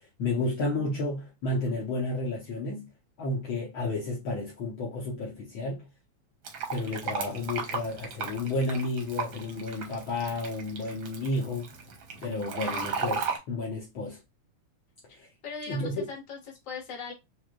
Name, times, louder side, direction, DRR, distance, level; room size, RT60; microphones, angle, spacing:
voice 1, 0.2-2.9 3.2-5.9 6.7-11.7 12.2-14.2 15.1-15.3 15.7-16.1, left 2 dB, 80° left, 1.1 m, -31 dB
Fill (with liquid), 6.4-13.4, right 5 dB, 60° right, 1.3 m, -35 dB
voice 2, 15.4-17.1, left 5 dB, 40° left, 1.1 m, -40 dB
6.3 x 2.5 x 2.3 m
omnidirectional pair, 3.6 m